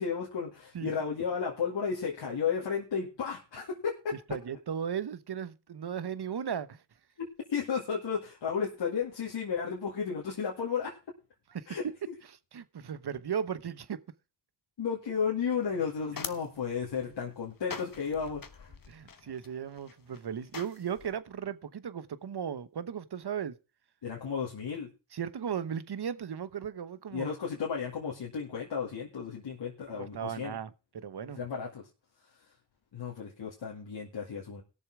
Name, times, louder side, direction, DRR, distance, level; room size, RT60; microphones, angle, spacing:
voice 1, 0.0-4.2 7.2-10.9 11.7-11.8 14.8-18.7 24.0-24.9 27.1-30.5 31.4-31.9 32.9-34.6, left 6 dB, 85° left, 2.4 m, -33 dB
voice 2, 4.3-6.8 11.5-11.8 12.3-14.0 18.9-23.6 25.1-27.3 29.9-31.4, right 8 dB, 60° right, 1.1 m, -36 dB
sound 1, 15.5-21.1, left 5 dB, 50° left, 1.3 m, -45 dB
16.5 x 7.0 x 4.9 m
cardioid pair, 40°, 43 cm